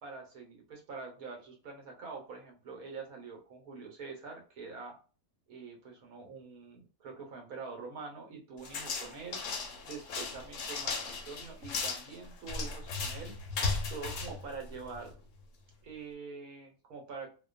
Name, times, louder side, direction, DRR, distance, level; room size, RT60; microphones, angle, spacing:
voice 1, 0.0-5.0 5.5-9.4 9.8-13.3 13.9-15.1 15.8-17.3, right 4 dB, 80° right, 1 dB, 1.3 m, -45 dB
sound 1, 8.6-15.2, left 4 dB, 65° left, 1.0 m, -36 dB
2.8 x 2.2 x 2.4 m, 0.36 s
omnidirectional pair, 1.5 m